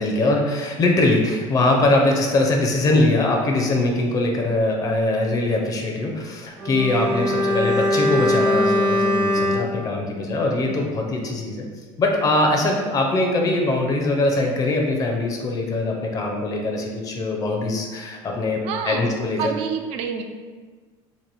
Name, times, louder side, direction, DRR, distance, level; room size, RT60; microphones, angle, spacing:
voice 1, 0.0-11.6 12.0-18.6 18.8-19.5, left 2 dB, 30° left, 1 dB, 0.5 m, -22 dB
Bowed string instrument, 6.6-11.0 11.3-11.4, left 1 dB, 90° right, 1.0 m, -22 dB
voice 2, 18.6-20.2, right 7 dB, 60° right, 5 dB, 0.4 m, -29 dB
3.0 x 2.5 x 4.0 m, 1.5 s
cardioid pair, 140°, 12 cm